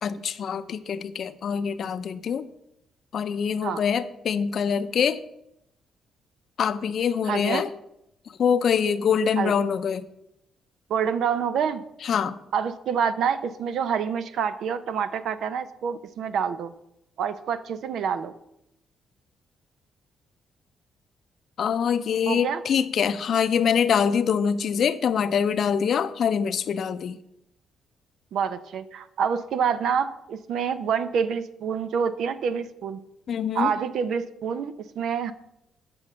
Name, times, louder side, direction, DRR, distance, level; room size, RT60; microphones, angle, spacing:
voice 1, 0.0-2.5 3.1-5.2 6.6-7.7 8.3-10.1 12.0-12.4 21.6-27.2 33.3-33.7, left 7 dB, 60° left, 13 dB, 0.6 m, -24 dB
voice 2, 7.3-7.6 9.4-9.5 10.9-11.8 12.5-16.7 17.2-18.3 22.3-22.6 28.3-33.0 33.5-35.3, right 7 dB, 70° right, 12 dB, 0.6 m, -27 dB
7.8 x 5.3 x 7.3 m, 0.82 s
cardioid pair, 90°, 0 cm